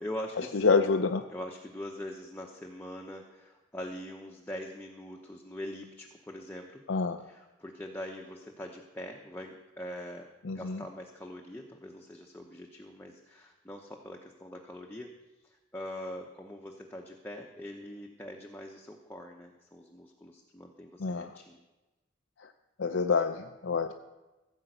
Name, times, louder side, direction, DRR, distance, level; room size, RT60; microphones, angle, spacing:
voice 1, 0.0-0.8 1.3-6.8 7.2-15.1 15.4-21.6, left 1 dB, 10° left, 0 dB, 0.9 m, -43 dB
voice 2, 0.6-1.2 6.9-7.2 10.5-10.8 21.0-21.3 22.8-23.9, left 4 dB, 70° left, 6 dB, 0.6 m, -27 dB
15.5 x 5.3 x 8.0 m, 1.1 s
head